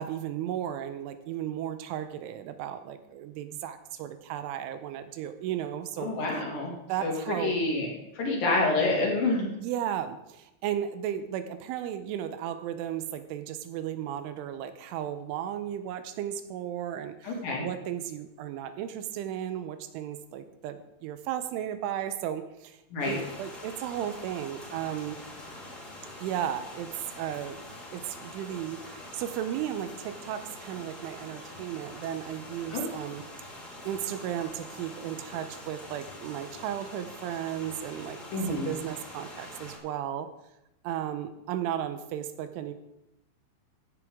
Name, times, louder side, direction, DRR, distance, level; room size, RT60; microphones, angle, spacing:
voice 1, 0.0-6.1 6.9-7.5 9.6-22.8 23.1-25.2 26.2-26.9 27.2-27.6 27.9-33.2 33.9-38.2 38.5-40.3 40.8-42.7, right 10 dB, 85° right, 10 dB, 3.1 m, -35 dB
voice 2, 6.0-6.7 7.0-7.9 8.1-9.5 17.2-17.7 22.9-23.2 32.7-32.8 38.3-38.7, left 2 dB, 50° left, -2 dB, 3.5 m, -28 dB
sound 1, 23.0-39.8, left 1 dB, 20° left, 2.8 m, -45 dB
15.5 x 9.5 x 3.7 m, 0.87 s
omnidirectional pair, 5.7 m